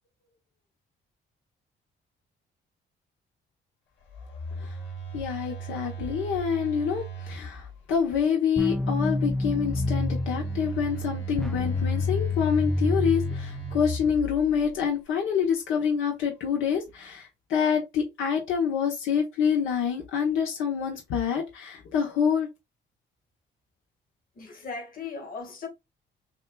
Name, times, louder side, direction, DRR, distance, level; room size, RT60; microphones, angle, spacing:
Telephone, 4.0-8.0 9.2-14.9, right 2 dB, 70° left, 1.8 m, -36 dB
voice 1, 5.1-22.5, left 7 dB, 85° left, 1.2 m, -27 dB
sound 1, 8.6-14.2, left 2 dB, ahead, 0.4 m, -28 dB
voice 2, 24.4-25.7, left 4 dB, 45° left, 1.9 m, -37 dB
6.2 x 2.5 x 2.4 m
cardioid pair, 90°, 20 cm